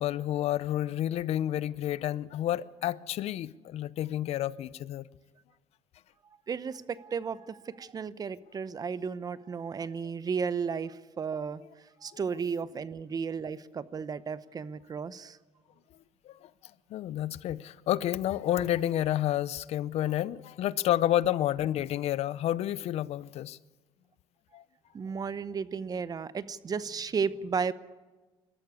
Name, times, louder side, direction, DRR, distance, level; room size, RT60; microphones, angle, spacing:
voice 1, 0.0-5.1 16.3-16.5 16.9-23.6 24.5-24.6, left 12 dB, 60° left, 0.6 m, -30 dB
voice 2, 6.5-11.6 12.0-15.4 24.9-27.7, right 6 dB, 30° right, 0.8 m, -34 dB
21.0 x 13.5 x 9.6 m
cardioid pair, 110°, 12 cm